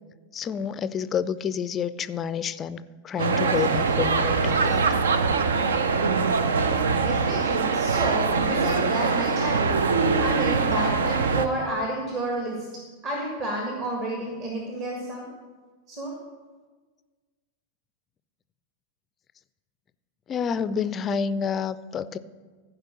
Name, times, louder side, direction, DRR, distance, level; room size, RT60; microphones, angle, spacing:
voice 1, 0.3-4.8 20.3-22.2, left 7 dB, 25° left, 15 dB, 0.4 m, -29 dB
sound 1, 3.2-11.5, right 4 dB, 65° right, 0.5 m, -23 dB
voice 2, 7.0-9.8 10.2-12.7 13.0-15.3 15.9-16.2, right 1 dB, 40° right, -1 dB, 1.7 m, -30 dB
14.5 x 5.0 x 6.1 m, 1.4 s
figure-of-eight pair, 90°, 0 cm